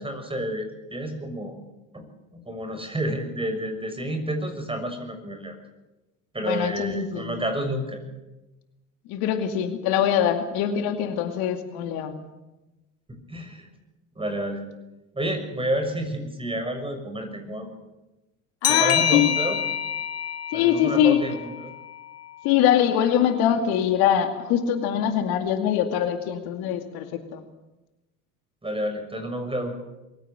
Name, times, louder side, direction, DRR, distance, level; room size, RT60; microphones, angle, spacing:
voice 1, 0.0-1.5 1.9-2.1 2.3-5.6 6.3-8.0 13.1-13.7 14.2-14.6 15.1-17.7 18.7-19.6 20.5-21.7 28.6-29.7, right 1 dB, 15° right, 6 dB, 6.5 m, -30 dB
voice 2, 6.4-7.4 9.1-12.2 18.6-19.4 20.5-21.2 22.4-27.4, left 9 dB, 65° left, 7 dB, 2.4 m, -23 dB
sound 1, 18.6-22.0, left 9 dB, 35° left, 1.8 m, -27 dB
22.5 x 16.0 x 8.8 m, 1.0 s
hypercardioid pair, 70°, 41 cm